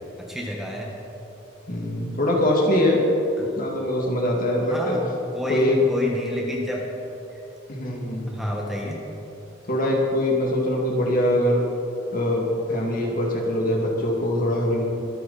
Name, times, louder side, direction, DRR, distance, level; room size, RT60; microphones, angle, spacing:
voice 1, 0.2-0.9 3.5-3.6 4.7-5.0 5.3-6.8 7.3-7.4 8.3-9.0, equal, ahead, -2 dB, 1.4 m, -30 dB
voice 2, 1.7-3.0 3.4-5.0 5.5-5.7 7.7-8.3 9.7-11.6 12.1-14.8, left 1 dB, 45° left, -1 dB, 2.3 m, -23 dB
23.5 x 9.0 x 4.2 m, 2.8 s
head